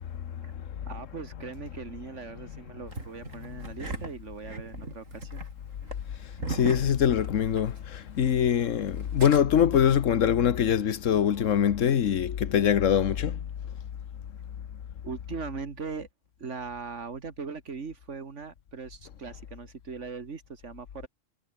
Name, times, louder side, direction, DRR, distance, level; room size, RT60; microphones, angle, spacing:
voice 1, 0.1-0.6 3.5-3.6 6.5-13.5, left 9 dB, 80° left, 1.4 m, -24 dB
voice 2, 0.9-5.4 15.0-16.1 16.4-21.1, right 5 dB, 70° right, 2.2 m, -40 dB
Engine starting, 2.9-7.8 8.0-8.1 9.0-9.4, right 3 dB, 90° right, 4.2 m, -38 dB
omnidirectional pair, 1.3 m